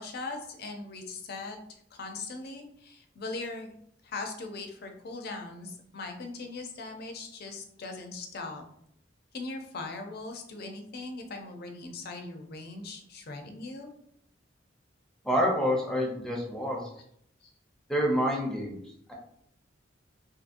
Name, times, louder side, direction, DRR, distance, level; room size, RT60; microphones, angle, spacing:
voice 1, 0.0-3.7 4.0-8.6 9.3-13.9 17.4-17.5, left 3 dB, 55° left, 4 dB, 0.5 m, -40 dB
voice 2, 15.2-16.9 17.9-18.8, equal, 5° left, -2 dB, 0.6 m, -27 dB
2.7 x 2.6 x 2.5 m, 0.69 s
head